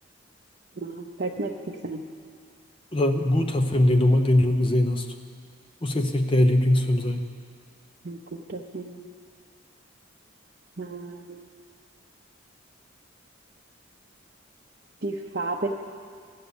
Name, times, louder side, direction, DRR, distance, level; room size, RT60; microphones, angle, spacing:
voice 1, 0.8-1.5 1.8-2.0 8.0-9.1 10.8-11.4 15.0-15.7, right 3 dB, 50° right, -2 dB, 0.7 m, -32 dB
voice 2, 2.9-5.1 5.8-7.3, left 1 dB, 25° left, 5 dB, 0.8 m, -21 dB
13.5 x 9.4 x 7.1 m, 2.1 s
head